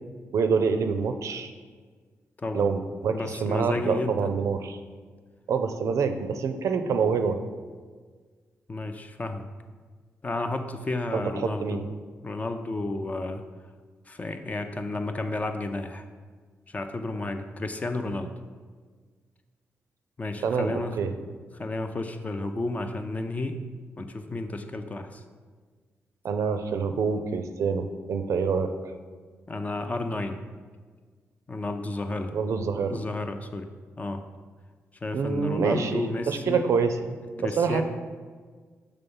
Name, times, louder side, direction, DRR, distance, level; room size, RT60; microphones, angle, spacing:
voice 1, 0.3-1.5 2.5-4.8 5.5-7.4 11.1-11.9 20.4-21.1 26.2-28.7 32.3-33.0 35.1-37.8, right 5 dB, 75° right, 8 dB, 0.4 m, -26 dB
voice 2, 2.4-2.7 3.1-4.3 8.7-9.4 10.2-11.8 12.2-13.4 14.1-16.1 16.7-18.3 20.2-20.9 21.5-23.6 24.0-25.2 29.5-30.4 31.5-32.3 32.9-33.7 34.0-34.2 35.0-36.7 37.4-37.8, left 2 dB, 30° left, 7 dB, 0.4 m, -32 dB
5.7 x 3.5 x 5.3 m, 1.5 s
cardioid pair, 90°, 5 cm